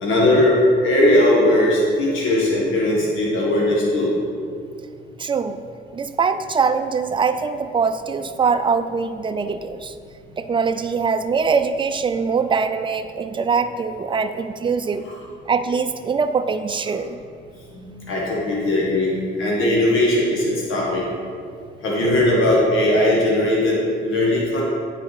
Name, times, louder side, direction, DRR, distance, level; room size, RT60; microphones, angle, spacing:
voice 1, 0.0-0.6 0.8-4.1 15.1-15.2 17.7-19.1 19.4-21.1 21.8-24.6, left 1 dB, 85° left, -4 dB, 1.6 m, -19 dB
voice 2, 5.2-5.6 5.9-9.9 10.4-15.1 15.5-17.2, right 5 dB, 25° right, 8 dB, 0.5 m, -22 dB
9.3 x 4.9 x 4.9 m, 2.3 s
cardioid pair, 90°, 20 cm